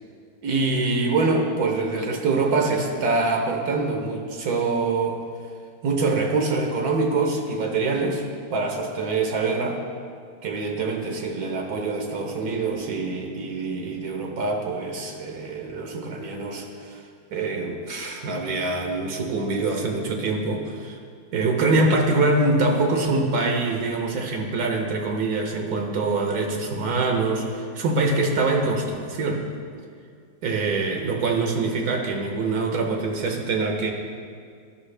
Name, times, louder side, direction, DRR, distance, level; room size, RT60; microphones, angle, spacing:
voice 1, 0.4-5.2 5.8-8.2 8.5-9.8 10.4-17.0 17.3-21.0 21.3-29.5 30.4-33.9, right 3 dB, 80° right, 2 dB, 1.3 m, -24 dB
12.5 x 5.4 x 3.2 m, 2.2 s
omnidirectional pair, 1.6 m